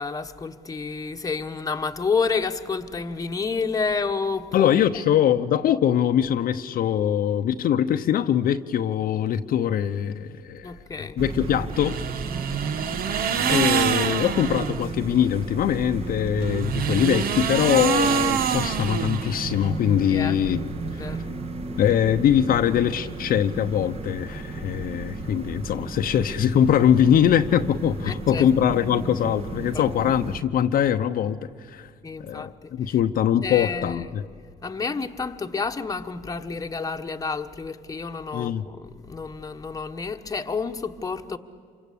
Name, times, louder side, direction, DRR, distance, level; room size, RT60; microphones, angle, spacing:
voice 1, 0.0-4.7 10.6-11.2 20.0-20.4 20.8-21.2 28.1-28.5 29.7-30.2 32.0-32.9 33.4-34.1 34.6-41.4, left 4 dB, 20° left, 1.2 m, -30 dB
voice 2, 4.5-10.7 11.2-12.0 13.5-20.6 21.8-31.4 31.7-31.9 32.2-34.2 38.3-38.6, left 9 dB, 60° left, 0.8 m, -22 dB
sound 1, 11.2-30.4, right 3 dB, 35° right, 1.7 m, -34 dB
Blow Ring, 11.7-14.9 16.3-19.7, right 7 dB, 60° right, 1.1 m, -25 dB
27.5 x 25.0 x 8.6 m
cardioid pair, 110°, 17 cm